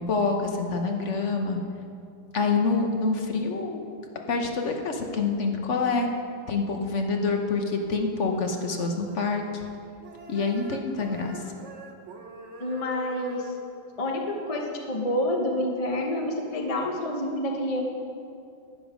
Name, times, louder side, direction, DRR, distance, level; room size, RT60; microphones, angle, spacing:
voice 1, 0.1-1.6 2.3-3.8 4.3-6.1 6.5-9.6 10.3-11.4, left 4 dB, 45° left, 3 dB, 1.1 m, -26 dB
sound 1, 8.3-9.7 10.0-13.6, right 4 dB, 45° right, 1.0 m, -45 dB
voice 2, 12.6-13.5 14.0-17.8, left 1 dB, 30° left, 1 dB, 0.7 m, -28 dB
12.0 x 10.5 x 5.1 m, 2.5 s
omnidirectional pair, 2.2 m